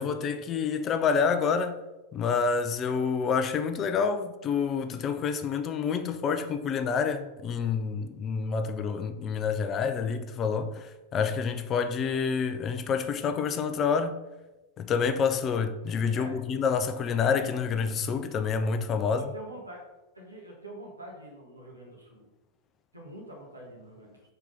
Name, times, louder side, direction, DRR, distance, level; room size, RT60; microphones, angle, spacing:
voice 1, 0.0-1.8 2.1-14.2 14.8-19.2, left 6 dB, 30° left, 0.5 m, -28 dB
voice 2, 19.0-19.8 20.1-22.3 22.9-24.2, right 1 dB, 85° right, 1.7 m, -45 dB
4.6 x 4.4 x 5.2 m
figure-of-eight pair, 90°, 0 cm